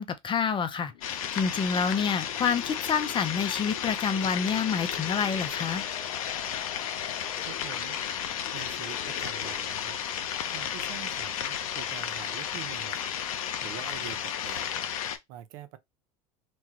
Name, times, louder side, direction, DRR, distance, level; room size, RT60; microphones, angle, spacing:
voice 1, 0.0-5.8, left 6 dB, 30° left, 0.6 m, -28 dB
sound 1, 0.9-9.7, left 11 dB, 60° left, 0.8 m, -46 dB
sound 2, 1.0-15.2, left 9 dB, 90° left, 0.5 m, -33 dB
voice 2, 7.4-8.0 8.5-9.9 10.5-13.1 13.6-14.7 15.3-15.8, right 12 dB, 70° right, 0.7 m, -45 dB
3.1 x 2.3 x 3.0 m
hypercardioid pair, 95°, 18 cm